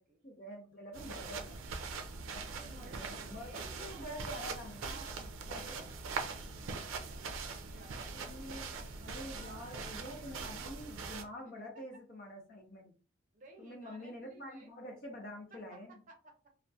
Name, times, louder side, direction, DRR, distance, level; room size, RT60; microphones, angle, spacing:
voice 1, 0.2-1.8 2.3-2.4 2.7-5.1 5.5-5.6 8.1-8.7 9.0-12.9 13.6-16.0, equal, 45° left, 1 dB, 0.7 m, -47 dB
sound 1, 0.9-11.2, right 4 dB, 85° right, 0.4 m, -42 dB
voice 2, 2.4-4.1 4.7-6.6 6.9-8.8 9.3-10.8 11.7-12.0 13.3-14.7 15.5-16.3, right 3 dB, 40° right, 1 dB, 0.6 m, -58 dB
2.3 x 2.1 x 2.6 m, 0.35 s
head